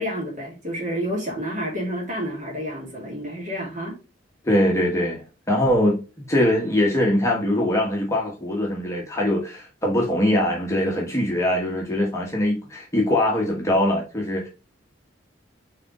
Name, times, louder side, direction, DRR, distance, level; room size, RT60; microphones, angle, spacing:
voice 1, 0.0-4.0, equal, 40° right, 2.2 m, -29 dB
voice 2, 4.4-14.5, left 1 dB, 15° left, 1.1 m, -22 dB
4.8 x 3.6 x 3.0 m
head